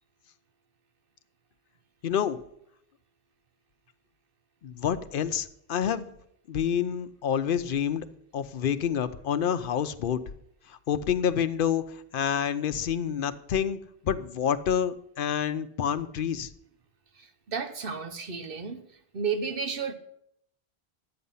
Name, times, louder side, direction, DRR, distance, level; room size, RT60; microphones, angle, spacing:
voice 1, 2.0-2.5 4.6-6.1 6.5-8.1 8.3-10.2 10.7-16.5, left 8 dB, 60° left, 12 dB, 0.8 m, -28 dB
voice 2, 17.2-18.8 19.1-19.9, right 5 dB, 65° right, 8 dB, 1.0 m, -32 dB
11.5 x 8.7 x 5.5 m, 0.73 s
omnidirectional pair, 1.0 m